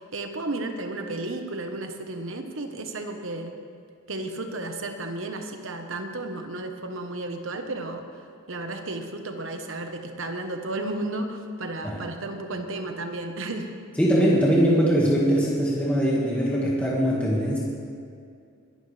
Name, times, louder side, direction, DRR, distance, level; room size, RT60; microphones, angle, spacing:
voice 1, 0.0-3.6 4.1-8.0 8.5-13.7, right 2 dB, 70° right, 5 dB, 1.3 m, -33 dB
voice 2, 14.0-17.6, equal, 5° left, -6 dB, 1.9 m, -21 dB
22.0 x 12.0 x 3.4 m, 2.3 s
head